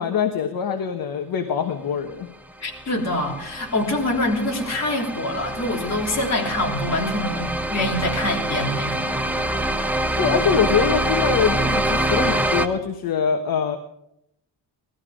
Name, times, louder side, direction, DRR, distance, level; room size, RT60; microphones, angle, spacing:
voice 1, 0.0-2.3 10.2-13.8, left 7 dB, 55° left, 5 dB, 1.2 m, -23 dB
voice 2, 2.6-9.1, left 1 dB, 40° left, 0 dB, 3.3 m, -25 dB
sound 1, 2.7-12.7, right 1 dB, 5° right, 0.7 m, -25 dB
18.5 x 13.5 x 5.0 m, 0.81 s
wide cardioid pair, 160°, 41 cm